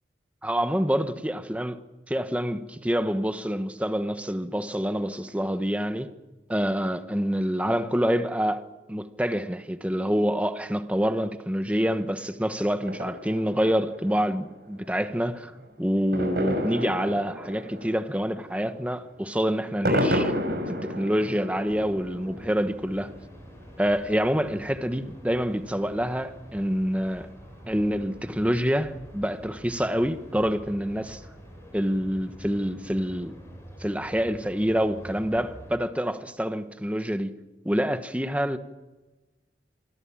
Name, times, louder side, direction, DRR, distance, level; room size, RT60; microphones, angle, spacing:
voice 1, 0.4-1.7 2.1-6.1 6.5-15.5 15.8-20.3 20.8-23.1 23.8-27.3 27.7-31.2 31.7-33.4 33.8-37.3 37.6-38.6, equal, 10° right, 1.3 m, -27 dB
sound 1, 12.8-25.5 25.9-26.0 26.2-26.3 26.5-26.6 27.0-27.1 28.0-28.1 28.5-28.6 29.9-30.3 30.6-30.7 31.1-31.2 31.6-31.7, equal, 65° right, 5.6 m, -32 dB
sound 2, 21.6-35.7, equal, 15° left, 6.9 m, -46 dB
27.0 x 20.0 x 7.4 m
head